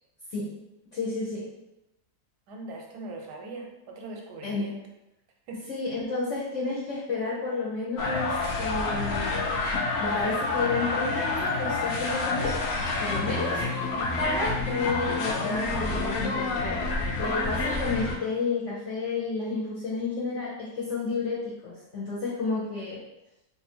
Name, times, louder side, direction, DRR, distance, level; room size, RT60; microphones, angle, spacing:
voice 1, 0.9-1.4 4.4-4.7 5.7-9.6 10.0-12.6 13.0-13.6 14.2-16.8 17.2-23.0, left 3 dB, 60° left, -6 dB, 0.9 m, -31 dB
voice 2, 2.5-4.8 5.5-5.6, right 2 dB, 90° right, 1 dB, 1.2 m, -40 dB
sound 1, 8.0-18.2, left 3 dB, 90° left, 0.5 m, -28 dB
2.7 x 2.5 x 4.2 m, 0.96 s
omnidirectional pair, 1.7 m